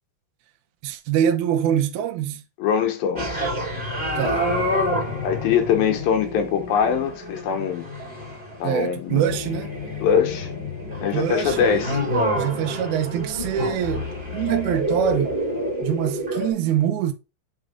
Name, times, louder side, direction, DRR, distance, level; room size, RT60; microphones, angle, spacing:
voice 1, 0.8-2.4 4.2-4.4 8.6-9.7 11.1-12.0 12.3-15.4 15.8-17.1, right 10 dB, 70° right, 2.0 m, -24 dB
voice 2, 2.6-3.4 5.2-7.9 8.6-9.2 10.0-10.5 11.0-12.0, left 7 dB, 80° left, 2.8 m, -22 dB
sound 1, 3.2-16.5, left 1 dB, 20° right, 1.5 m, -28 dB
8.0 x 3.6 x 3.7 m
omnidirectional pair, 4.1 m